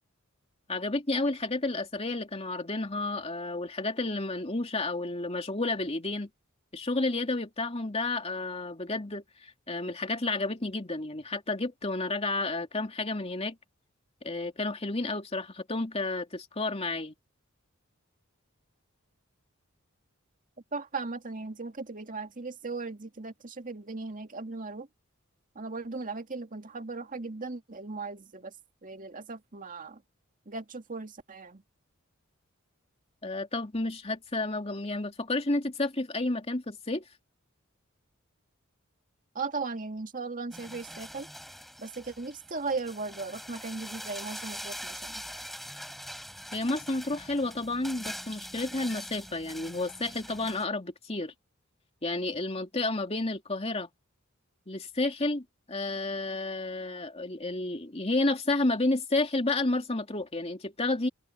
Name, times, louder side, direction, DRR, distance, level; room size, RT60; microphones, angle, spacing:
voice 1, 0.7-6.3 6.7-13.6 14.2-17.1 33.2-37.0 46.5-51.3 52.0-53.9 54.7-61.1, left 2 dB, 30° left, 2.7 m, -31 dB
voice 2, 20.7-24.9 25.6-28.5 28.8-30.0 30.5-31.6 39.4-41.3 41.8-45.2, right 3 dB, 40° right, 2.0 m, -37 dB
sound 1, 40.5-50.7, equal, ahead, 5.2 m, -43 dB
open air
head